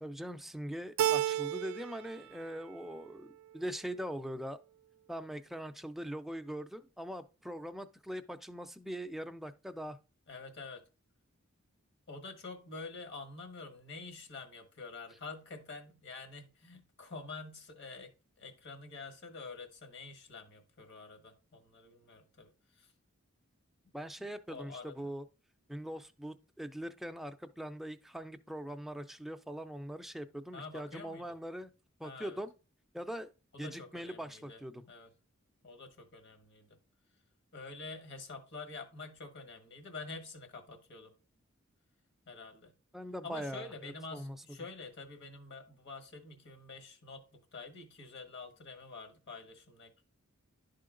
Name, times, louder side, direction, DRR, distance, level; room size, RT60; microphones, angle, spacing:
voice 1, 0.0-4.6 5.1-10.0 23.9-25.2 25.7-31.7 32.0-32.5 32.9-33.3 33.6-34.8 42.9-44.4, equal, ahead, 0.4 m, -42 dB
Keyboard (musical), 1.0-2.1 2.4-3.2, right 11 dB, 80° right, 0.3 m, -32 dB
voice 2, 10.3-10.8 12.1-18.1 18.4-22.9 24.2-25.1 30.5-31.4 32.0-32.4 33.5-34.6 34.9-35.1 35.6-36.8 37.5-41.1 42.3-42.7 43.2-50.0, left 4 dB, 55° left, 1.5 m, -47 dB
11.0 x 3.8 x 3.7 m
head